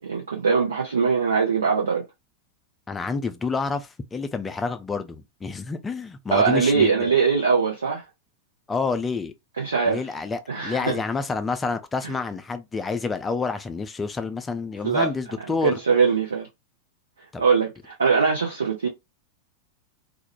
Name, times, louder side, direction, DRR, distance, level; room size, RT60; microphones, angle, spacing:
voice 1, 0.0-2.0 6.3-8.0 9.6-10.0 10.5-11.0 12.0-12.1 14.8-15.1 15.6-16.5 17.4-18.9, right 5 dB, 70° right, 0.6 m, -22 dB
voice 2, 2.9-7.1 8.7-9.3 9.9-15.8 17.3-17.4, left 4 dB, 15° left, 0.3 m, -28 dB
2.4 x 2.1 x 2.9 m
figure-of-eight pair, 90°, 0 cm